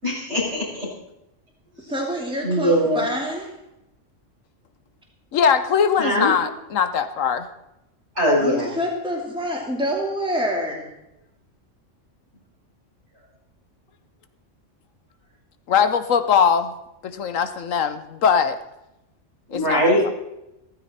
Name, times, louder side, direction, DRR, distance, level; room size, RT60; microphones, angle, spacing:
voice 1, 0.0-0.9 1.8-1.9 2.4-3.0 6.0-6.3 8.2-8.7 19.5-20.1, equal, 60° right, -5 dB, 7.9 m, -21 dB
voice 2, 1.9-3.5 8.4-10.9, equal, 5° right, -1 dB, 2.5 m, -26 dB
voice 3, 5.3-7.5 15.7-16.7 17.0-18.6 19.5-19.8, left 7 dB, 80° left, 10 dB, 1.3 m, -20 dB
16.0 x 14.5 x 4.3 m, 0.88 s
omnidirectional pair, 1.3 m